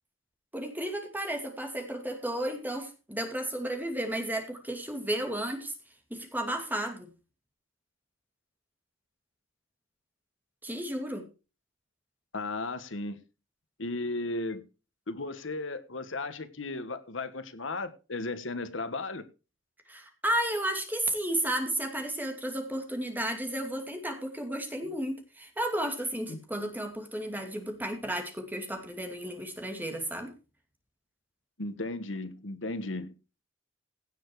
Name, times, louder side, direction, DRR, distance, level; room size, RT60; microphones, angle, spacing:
voice 1, 0.5-5.7 6.1-7.1 10.6-11.3 19.9-30.3, right 1 dB, 10° right, 2.6 m, -33 dB
voice 2, 12.3-13.2 13.8-14.6 15.1-19.2 26.3-26.4 31.6-33.1, left 2 dB, 70° left, 1.3 m, -35 dB
16.5 x 7.0 x 4.7 m
head